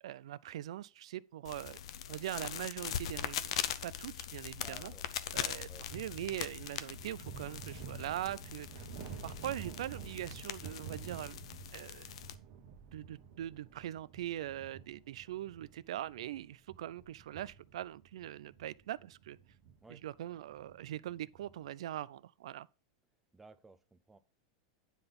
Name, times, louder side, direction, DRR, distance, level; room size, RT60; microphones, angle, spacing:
voice 1, 0.0-1.8 2.1-3.5 3.8-4.9 5.3-8.8 9.2-11.4 11.7-12.1 12.9-19.4 19.9-22.7, right 12 dB, 75° right, 0.4 m, -42 dB
sound 1, 1.4-12.3, left 10 dB, 75° left, 0.6 m, -41 dB
voice 2, 4.5-5.0 5.7-5.9 19.8-20.0 23.3-24.2, right 3 dB, 5° right, 0.5 m, -56 dB
sound 2, 5.8-21.7, right 7 dB, 45° right, 1.1 m, -51 dB
9.7 x 3.9 x 5.3 m
supercardioid pair, 160°, 3 cm